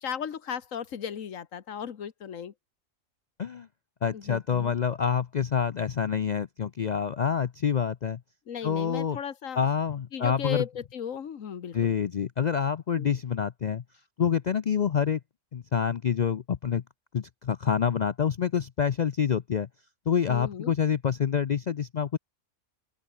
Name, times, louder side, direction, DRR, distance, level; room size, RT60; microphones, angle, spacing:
voice 1, 0.0-2.5 4.1-4.7 8.5-9.6 10.1-11.9 13.0-13.2 20.3-20.7, left 8 dB, 90° left, 1.6 m, -36 dB
voice 2, 4.0-8.2 8.6-9.2 9.6-10.6 11.7-13.8 14.2-15.2 15.5-16.8 17.1-19.7 20.1-22.2, left 7 dB, 55° left, 0.5 m, -27 dB
open air
omnidirectional pair, 1.3 m